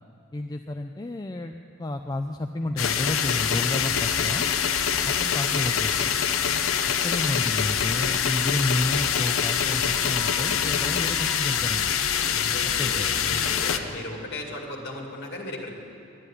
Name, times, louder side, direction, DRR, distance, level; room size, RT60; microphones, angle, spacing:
voice 1, 0.3-4.5 5.0-6.1 7.0-11.9 12.6-13.1, left 2 dB, 20° left, 5 dB, 0.4 m, -31 dB
sound 1, 2.8-13.8, left 8 dB, 70° left, 0.7 m, -25 dB
voice 2, 12.2-15.7, left 1 dB, 50° left, -1 dB, 2.3 m, -36 dB
11.5 x 9.4 x 9.9 m, 2.8 s
head